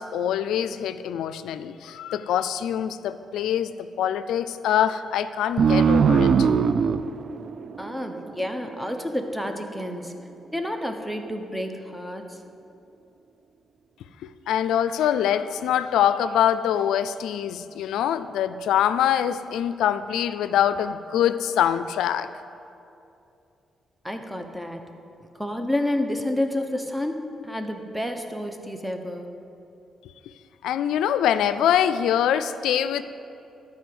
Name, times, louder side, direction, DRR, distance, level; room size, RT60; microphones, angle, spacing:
voice 1, 0.0-6.5 14.2-22.3 30.6-33.0, left 10 dB, 85° left, 13 dB, 0.4 m, -24 dB
sound 1, 5.6-8.7, right 6 dB, 60° right, 0.4 m, -21 dB
voice 2, 7.8-10.1 10.5-12.4 24.0-24.9 25.4-29.3, left 1 dB, 5° right, 5 dB, 1.1 m, -29 dB
12.5 x 4.9 x 7.9 m, 2.7 s
cardioid pair, 75°, 0 cm